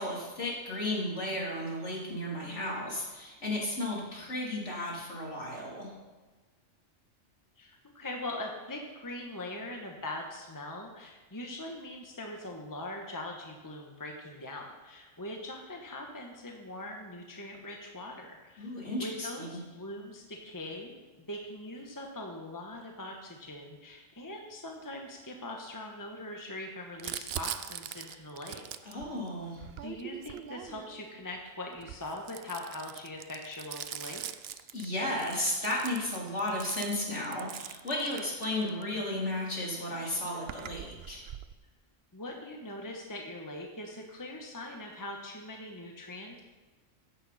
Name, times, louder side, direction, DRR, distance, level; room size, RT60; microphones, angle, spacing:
voice 1, 0.0-5.9 18.6-19.6 28.9-29.6 34.7-41.2, left 1 dB, 60° left, -3 dB, 3.9 m, -34 dB
voice 2, 7.6-18.7 19.0-20.9 21.3-28.6 29.8-34.2 42.1-46.4, left 1 dB, 15° left, 1 dB, 1.3 m, -41 dB
Crumpling crinkling, 27.0-31.0 31.7-38.8 39.7-39.8 39.9-41.5, right 10 dB, 60° right, 0.7 m, -42 dB
15.0 x 11.0 x 4.3 m, 1.3 s
omnidirectional pair, 1.4 m